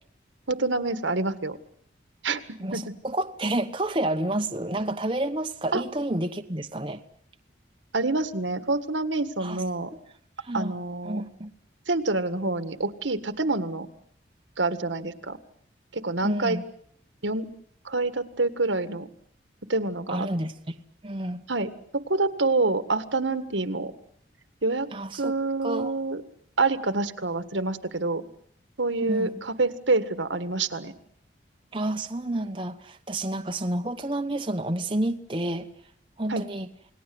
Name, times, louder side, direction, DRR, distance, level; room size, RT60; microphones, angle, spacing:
voice 1, 0.5-1.6 2.2-2.4 2.7-2.8 5.7-5.8 7.9-9.9 10.5-11.2 11.9-13.9 14.6-15.4 15.9-16.6 17.2-17.5 17.9-19.1 19.7-20.3 21.5-23.9 24.6-24.9 25.2-26.2 26.6-28.2 28.8-30.9 36.3-36.5, right 3 dB, 80° right, 11 dB, 1.8 m, -27 dB
voice 2, 2.6-7.0 9.4-9.6 10.4-10.7 11.0-11.5 16.2-16.7 20.1-20.8 21.0-21.4 24.9-25.3 25.6-25.9 29.0-29.4 31.7-35.7 36.2-36.7, right 1 dB, 25° right, 6 dB, 1.0 m, -29 dB
29.0 x 19.5 x 7.9 m, 0.64 s
head